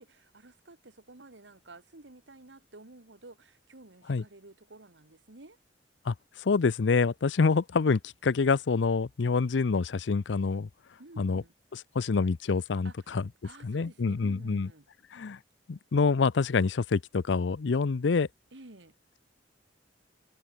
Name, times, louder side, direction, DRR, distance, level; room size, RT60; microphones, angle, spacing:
voice 1, 0.0-5.6 11.0-11.5 12.8-14.9 18.5-18.9, right 2 dB, 85° right, 2.0 m, -52 dB
voice 2, 6.1-10.7 11.2-11.4 11.9-13.3 13.6-14.7 15.1-15.4 15.7-18.3, left 4 dB, 90° left, 0.5 m, -26 dB
head